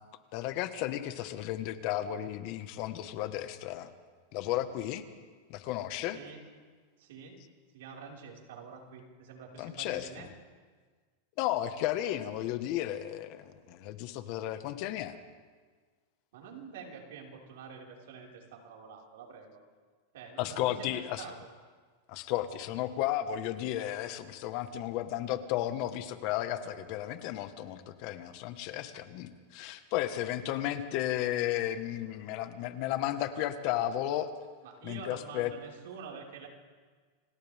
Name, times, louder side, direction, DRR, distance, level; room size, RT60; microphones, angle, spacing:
voice 1, 0.3-3.9 4.3-5.0 5.5-6.2 9.6-10.3 11.4-15.2 20.4-21.3 22.1-34.3 34.8-35.5, left 13 dB, 50° left, 9 dB, 1.6 m, -33 dB
voice 2, 6.0-6.4 7.0-7.4 7.7-10.3 16.3-19.6 20.1-21.5 34.6-36.5, right 5 dB, 75° right, -2 dB, 5.5 m, -47 dB
29.5 x 25.5 x 3.7 m, 1.5 s
supercardioid pair, 135°, 0 cm